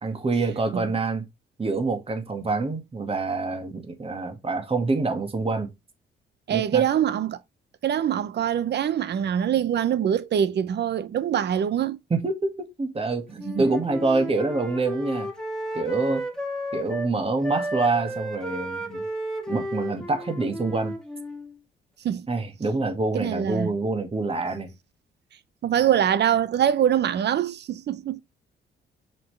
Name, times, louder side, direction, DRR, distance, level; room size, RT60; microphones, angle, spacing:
voice 1, 0.0-1.3 1.6-5.7 6.5-6.8 12.1-12.5 12.8-15.3 15.7-16.2 16.7-19.0 19.5-20.9 22.3-24.7, right 3 dB, 30° right, 1.9 m, -26 dB
voice 2, 6.5-7.4 7.8-12.0 13.5-13.6 22.0-22.3 23.1-23.7 25.6-28.2, right 9 dB, 60° right, 0.7 m, -24 dB
Wind instrument woodwind instrument, 13.4-17.1 17.4-21.5, right 1 dB, 5° left, 2.6 m, -33 dB
6.5 x 5.8 x 3.3 m
cardioid pair, 90°, 20 cm